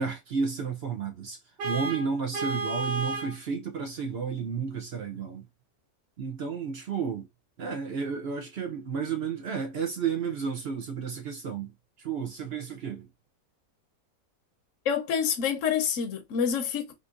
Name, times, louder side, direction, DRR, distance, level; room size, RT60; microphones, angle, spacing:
voice 1, 0.0-1.4 1.6-5.5 6.2-7.3 7.6-11.7 12.0-13.1, right 6 dB, 65° right, 0.6 m, -32 dB
Vehicle horn car horn honking, 1.6-3.4, right 3 dB, 85° right, 1.5 m, -32 dB
voice 2, 14.8-16.9, left 7 dB, 60° left, 0.9 m, -27 dB
3.7 x 2.6 x 2.4 m
omnidirectional pair, 1.9 m